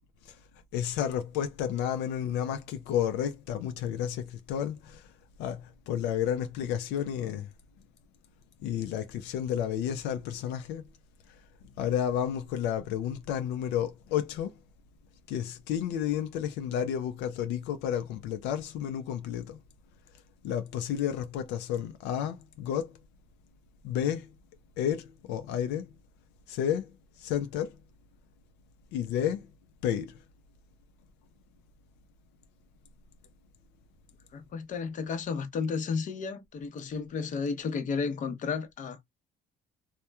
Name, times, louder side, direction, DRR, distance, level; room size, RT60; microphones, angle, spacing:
voice 1, 0.7-5.1 5.4-7.5 8.6-10.9 11.8-14.5 15.3-19.6 20.4-23.0 23.8-24.3 24.8-25.9 26.5-26.9 27.2-27.8 28.9-29.5 29.8-30.2, left 9 dB, 90° left, 0.4 m, -31 dB
voice 2, 34.3-39.0, left 5 dB, 50° left, 0.7 m, -32 dB
2.9 x 2.1 x 2.2 m
cardioid pair, 110°, 17 cm